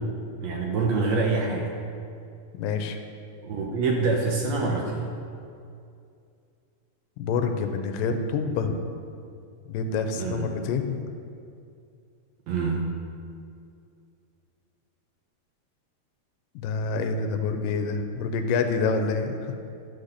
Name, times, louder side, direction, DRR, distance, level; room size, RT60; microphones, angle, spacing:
voice 1, 0.4-1.7 3.4-5.1 10.2-10.5 12.5-12.8, right 3 dB, 75° right, 0 dB, 1.6 m, -26 dB
voice 2, 2.5-3.0 7.2-8.8 9.7-11.0 16.6-19.7, left 4 dB, 85° left, 6 dB, 2.3 m, -27 dB
11.0 x 3.9 x 6.6 m, 2.4 s
omnidirectional pair, 3.8 m